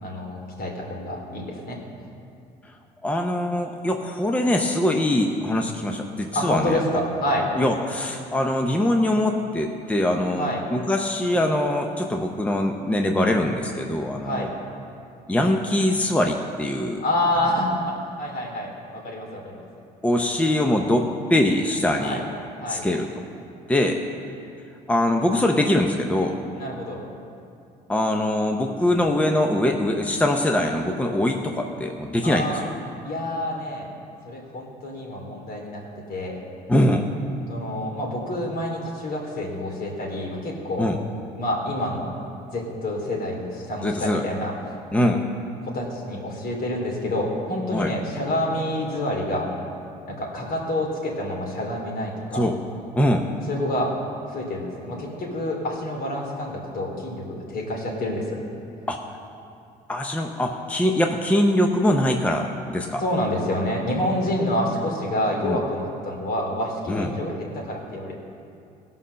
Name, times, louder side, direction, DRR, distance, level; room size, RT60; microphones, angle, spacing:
voice 1, 0.0-1.8 6.3-7.5 10.4-10.6 14.2-14.5 17.0-19.6 22.0-22.2 22.6-22.8 26.5-27.0 32.2-32.6 33.0-33.9 34.2-35.8 36.1-36.4 37.5-40.9 41.3-42.1 42.5-44.5 45.6-49.5 50.1-52.5 53.5-53.9 54.3-58.4 63.0-68.1, left 1 dB, 60° left, -1 dB, 2.9 m, -28 dB
voice 2, 3.0-6.8 7.6-14.5 15.3-17.0 20.0-22.2 22.7-23.1 23.7-24.0 24.9-26.4 27.9-32.7 36.7-37.1 40.8-41.0 43.8-44.2 44.9-45.2 47.7-47.9 52.3-52.6 53.0-53.3 58.9-59.0 59.9-63.0 65.4-65.6 66.9-67.1, left 1 dB, 10° left, 3 dB, 0.7 m, -22 dB
16.5 x 5.6 x 6.4 m, 2.5 s
cardioid pair, 110°, 17 cm